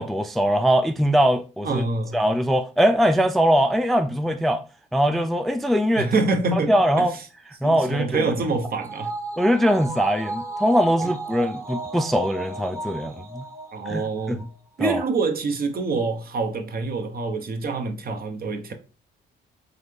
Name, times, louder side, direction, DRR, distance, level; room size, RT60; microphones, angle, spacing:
voice 1, 0.0-1.8 2.1-4.6 4.9-6.1 6.5-7.1 7.6-8.3 9.4-13.4 13.9-14.4 14.8-15.0, equal, ahead, 0.3 m, -21 dB
voice 2, 1.6-2.2 6.0-7.2 7.6-9.1 11.0-11.1 13.7-14.5 14.8-18.7, right 3 dB, 50° right, 0.8 m, -26 dB
sound 1, 7.8-14.5 14.8-14.9, right 2 dB, 15° right, 0.9 m, -35 dB
4.0 x 3.3 x 3.2 m
cardioid pair, 90°, 20 cm